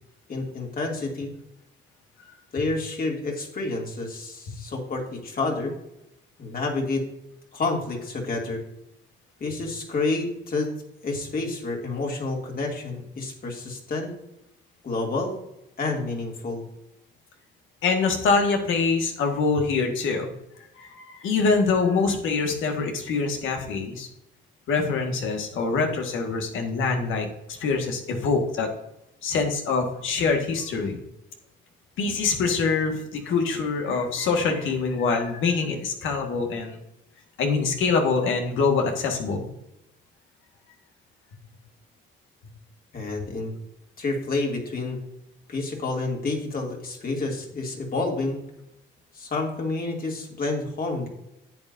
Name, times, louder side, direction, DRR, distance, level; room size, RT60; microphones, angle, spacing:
voice 1, 0.3-1.3 2.5-5.7 6.4-7.0 7.5-8.6 9.4-10.7 11.0-14.1 14.8-15.4 15.8-16.6 42.9-43.5 44.0-45.0 45.5-48.4 49.1-51.1, left 3 dB, 45° left, 0 dB, 2.6 m, -29 dB
voice 2, 17.8-20.3 20.8-24.1 24.7-28.7 29.2-31.0 32.0-36.8 37.4-39.5, left 4 dB, 85° left, 3 dB, 1.8 m, -24 dB
10.0 x 7.8 x 2.7 m, 0.85 s
cardioid pair, 90°, 20 cm